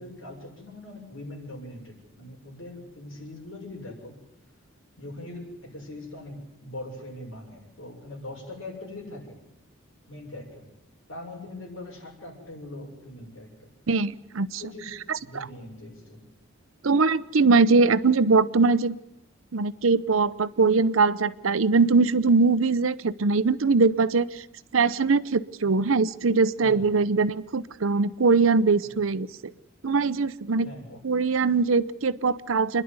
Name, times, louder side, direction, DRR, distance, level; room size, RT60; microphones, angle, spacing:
voice 1, 0.0-4.2 5.0-9.4 10.1-10.6 11.1-13.7 14.6-16.2 26.6-26.9 28.8-28.9 30.6-31.0, left 1 dB, 75° left, 0 dB, 6.8 m, -41 dB
voice 2, 13.9-14.6 15.1-15.5 16.8-19.0 19.5-24.4 24.7-29.3 29.8-30.7 31.0-32.8, right 4 dB, 85° right, 16 dB, 0.7 m, -22 dB
28.0 x 11.0 x 9.6 m, 0.89 s
head